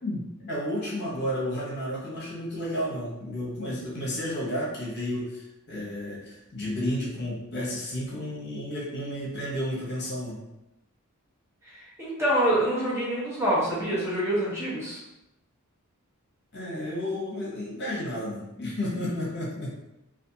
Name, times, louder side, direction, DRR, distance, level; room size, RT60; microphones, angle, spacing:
voice 1, 0.0-10.4 16.5-19.8, left 1 dB, 50° left, -5 dB, 0.8 m, -32 dB
voice 2, 11.6-15.0, right 1 dB, 10° right, -8 dB, 0.7 m, -26 dB
2.5 x 2.4 x 2.7 m, 0.92 s
head